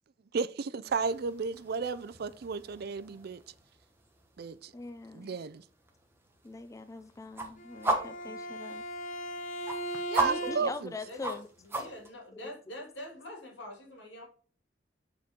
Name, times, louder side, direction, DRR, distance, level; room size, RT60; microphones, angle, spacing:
voice 1, 0.3-3.4 4.4-4.7 5.1-5.6 10.1-10.9, right 5 dB, 60° right, 0.4 m, -33 dB
sound 1, 0.9-12.1, right 2 dB, 15° right, 1.1 m, -39 dB
voice 2, 4.7-5.4 6.4-8.8 10.2-11.5, left 3 dB, 15° left, 0.3 m, -42 dB
Bowed string instrument, 7.6-11.0, right 1 dB, 45° left, 0.7 m, -38 dB
voice 3, 7.9-8.3 10.2-10.6 11.0-11.4 11.6-14.2, left 1 dB, 75° left, 2.6 m, -45 dB
7.3 x 4.4 x 3.6 m
head